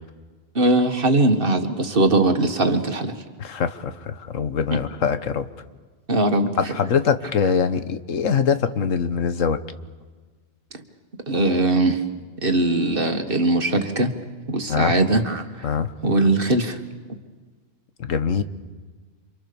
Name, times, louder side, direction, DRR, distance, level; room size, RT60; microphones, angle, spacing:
voice 1, 0.6-3.2 4.7-4.8 6.1-6.7 11.3-12.0 12.4-14.1 14.5-15.4 16.0-16.8, right 2 dB, 40° right, 6 dB, 1.9 m, -20 dB
voice 2, 3.4-5.5 6.6-9.6 14.7-14.9 15.6-15.9 18.0-18.4, left 6 dB, 70° left, 11 dB, 1.5 m, -23 dB
28.5 x 25.5 x 7.0 m, 1.4 s
omnidirectional pair, 1.4 m